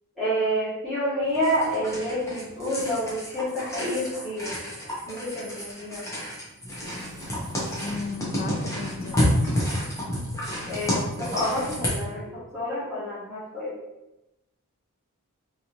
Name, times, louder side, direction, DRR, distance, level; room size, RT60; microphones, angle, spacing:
voice 1, 0.2-4.5 5.1-6.0 10.7-13.8, equal, ahead, -14 dB, 1.2 m, -28 dB
sound 1, 1.3-12.0, equal, 15° left, 0.9 m, -30 dB
voice 2, 7.8-9.3, left 4 dB, 45° left, 5 dB, 0.3 m, -35 dB
3.4 x 2.7 x 2.9 m, 0.94 s
head